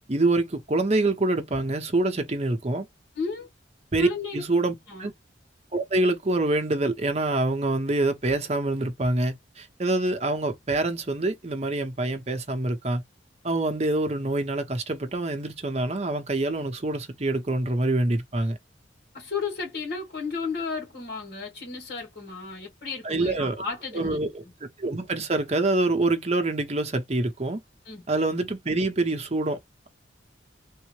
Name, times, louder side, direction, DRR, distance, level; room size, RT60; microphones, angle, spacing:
voice 1, 0.1-2.9 3.9-4.1 4.3-4.7 5.0-5.1 5.7-13.0 13.4-18.6 23.0-23.6 23.9-24.4 24.8-27.6 28.1-29.6, right 2 dB, 35° right, 0.7 m, -25 dB
voice 2, 3.1-3.5 4.0-4.4 4.9-5.1 19.1-24.2 27.9-28.0, left 4 dB, 60° left, 2.4 m, -33 dB
3.6 x 2.1 x 3.0 m
head